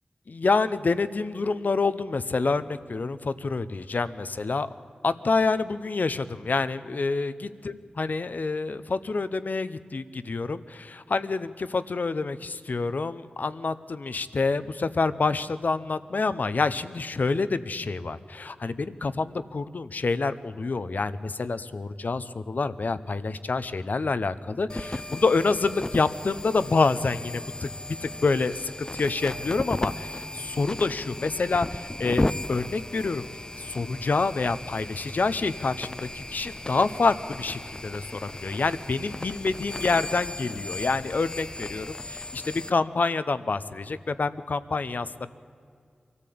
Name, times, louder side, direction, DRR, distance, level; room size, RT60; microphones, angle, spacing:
voice 1, 0.3-4.7 5.0-33.2 33.6-45.3, left 3 dB, 70° left, 13 dB, 0.8 m, -27 dB
sound 1, 24.7-42.7, left 1 dB, 30° left, 0.5 m, -35 dB
23.5 x 14.0 x 8.6 m, 2.2 s
cardioid pair, 45°, 3 cm